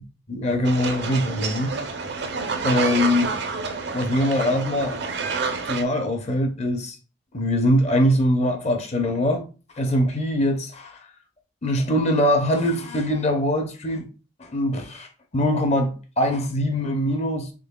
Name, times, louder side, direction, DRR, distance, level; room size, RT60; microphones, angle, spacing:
voice 1, 0.3-1.7 2.6-3.3 3.9-5.0 5.6-7.0 7.3-9.4 9.8-11.0 11.6-14.1 14.4-17.5, equal, 35° left, 0.6 m, -22 dB
sound 1, 0.6-5.8, right 4 dB, 55° right, 0.5 m, -28 dB
3.8 x 3.4 x 2.2 m
head